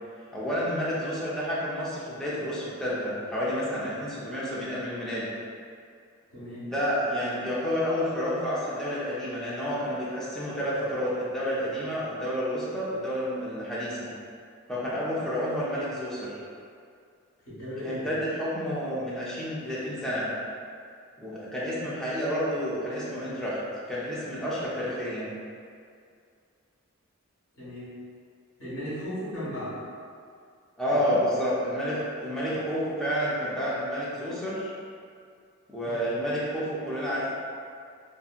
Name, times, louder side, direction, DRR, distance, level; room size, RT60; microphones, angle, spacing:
voice 1, 0.3-5.2 6.6-14.1 14.7-16.4 17.8-20.3 21.2-23.6 23.9-25.3 30.8-34.7 35.7-37.3, equal, 5° left, -9 dB, 0.5 m, -30 dB
voice 2, 6.3-6.7 17.4-18.2 27.5-28.0 28.6-29.8 30.9-31.2 35.8-36.0, equal, 60° left, -11 dB, 1.4 m, -37 dB
2.7 x 2.6 x 2.4 m, 2.3 s
head